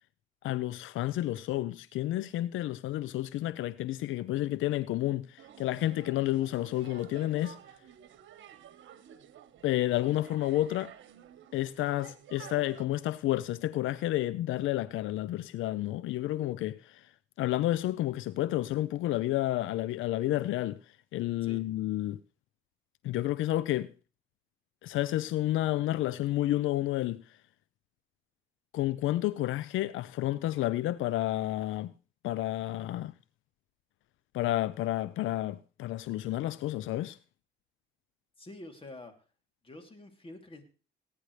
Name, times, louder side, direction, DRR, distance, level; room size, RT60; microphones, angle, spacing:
voice 1, 0.4-7.6 9.6-10.9 11.5-17.1 17.4-20.8 21.1-22.2 23.0-23.9 24.8-27.2 28.7-31.9 32.2-33.1 34.3-37.2, left 15 dB, 85° left, 0.5 m, -30 dB
sound 1, 5.4-12.9, right 9 dB, 70° right, 1.3 m, -52 dB
voice 2, 38.4-39.1 39.6-40.6, left 2 dB, 25° left, 2.9 m, -47 dB
18.5 x 9.6 x 3.2 m
cardioid pair, 90°, 20 cm